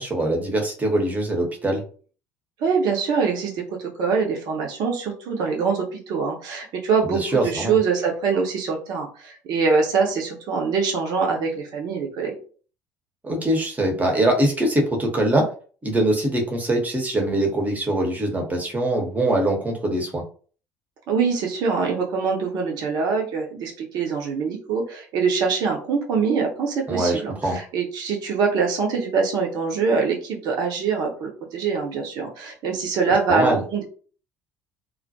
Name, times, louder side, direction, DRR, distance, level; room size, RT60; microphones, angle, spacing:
voice 1, 0.0-1.8 7.0-7.8 13.2-15.5 15.8-20.2 26.9-27.6 33.3-33.6, right 1 dB, 15° right, 1 dB, 0.9 m, -23 dB
voice 2, 2.6-12.4 21.1-33.8, right 5 dB, 50° right, 1 dB, 0.7 m, -24 dB
2.2 x 2.1 x 2.7 m, 0.41 s
figure-of-eight pair, 60°, 9 cm